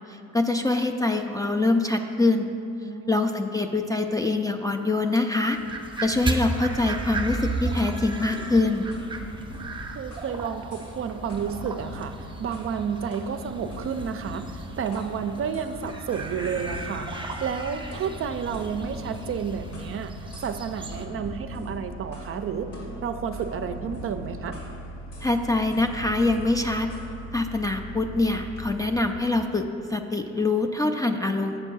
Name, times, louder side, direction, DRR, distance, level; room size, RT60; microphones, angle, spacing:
voice 1, 0.1-2.5 3.1-5.6 6.0-8.9 25.2-26.9 27.3-31.6, left 2 dB, 10° left, 4 dB, 0.3 m, -24 dB
voice 2, 2.8-3.1 9.9-20.1 20.4-22.7 23.0-24.6, right 7 dB, 45° right, 9 dB, 0.5 m, -31 dB
sound 1, 5.4-21.1, right 3 dB, 15° right, 0.8 m, -35 dB
sound 2, 8.3-10.4 10.7-11.0 11.3-12.8 13.1-15.1 15.5-15.7 16.1-17.5 17.9-20.0 20.3-20.6 20.9-22.3 22.7-24.8 25.1-25.4 25.7-27.1, left 1 dB, 85° left, 2.0 m, -42 dB
sound 3, 15.0-29.4, right 1 dB, 45° left, 0.6 m, -42 dB
7.8 x 4.5 x 6.0 m, 2.6 s
cardioid pair, 90°, 30 cm